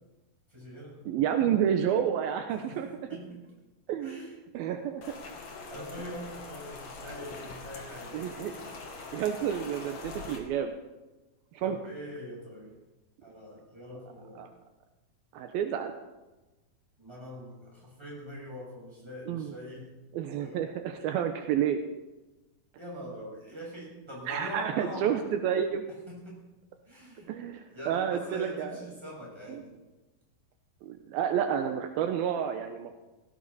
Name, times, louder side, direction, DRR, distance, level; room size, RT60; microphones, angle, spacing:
voice 1, 0.5-1.0 2.7-2.8 3.1-3.4 4.0-4.4 5.7-8.2 11.6-12.8 13.2-14.5 17.0-19.9 20.4-20.7 22.8-25.2 26.1-26.4 26.9-27.3 27.7-29.8, equal, 5° right, -5 dB, 7.0 m, -43 dB
voice 2, 1.1-2.9 3.9-4.2 4.5-5.0 8.1-8.6 9.1-10.8 11.5-11.8 14.4-14.5 15.3-15.9 19.3-19.5 20.1-21.8 24.3-25.8 27.3-28.8 29.5-29.6 30.8-32.9, right 9 dB, 80° right, 6 dB, 2.7 m, -30 dB
Rain, 5.0-10.4, left 4 dB, 45° left, 2.5 m, -43 dB
17.5 x 16.5 x 4.2 m, 1.1 s
omnidirectional pair, 4.4 m